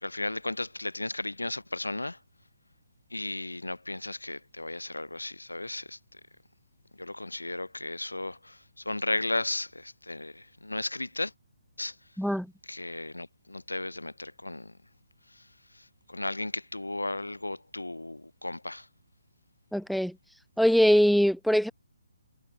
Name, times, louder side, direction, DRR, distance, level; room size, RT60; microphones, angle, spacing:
voice 1, 0.0-2.2 3.1-6.0 7.0-8.6 8.9-11.3 11.8-11.9 12.7-14.7 16.1-18.9, left 2 dB, 85° left, 3.8 m, -34 dB
voice 2, 19.7-20.2 20.6-21.7, equal, ahead, 2.4 m, -22 dB
figure-of-eight pair, 140°, 0 cm